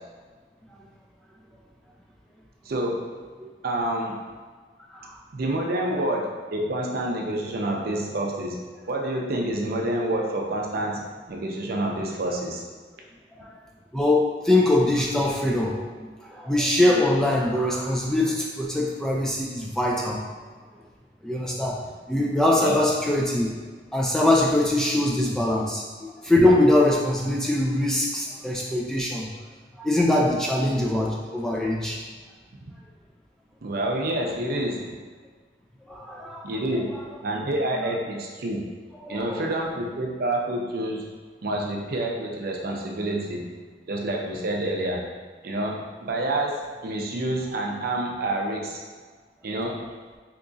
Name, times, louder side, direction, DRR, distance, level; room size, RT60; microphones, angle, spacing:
voice 1, 2.7-3.1 3.6-4.2 5.3-8.6 8.9-12.7 22.6-22.8 33.6-35.0 36.4-36.9 37.2-38.6 39.1-41.0 41.4-43.5 43.9-45.0 45.4-48.8 49.4-49.8, right 1 dB, 60° right, 0 dB, 0.5 m, -28 dB
voice 2, 13.9-15.9 16.2-20.2 21.2-21.8 22.1-23.5 23.9-29.3 29.8-32.0 35.9-36.5 39.0-39.4, left 1 dB, 5° left, -2 dB, 0.3 m, -22 dB
3.5 x 2.9 x 2.6 m, 1.5 s
head